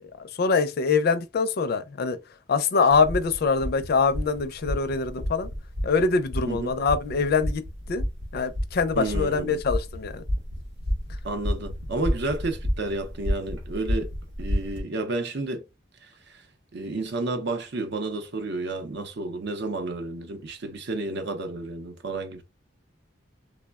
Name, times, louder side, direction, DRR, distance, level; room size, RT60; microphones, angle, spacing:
voice 1, 0.0-2.2 2.5-5.5 5.8-7.6 7.9-8.0 8.3-10.2, left 4 dB, 55° left, 0.4 m, -24 dB
sound 1, 2.9-14.8, equal, 85° right, 1.1 m, -31 dB
voice 2, 9.0-9.6 11.2-14.1 14.4-15.6 16.0-16.4 16.7-22.4, right 2 dB, 65° right, 0.6 m, -31 dB
3.2 x 2.0 x 2.2 m
head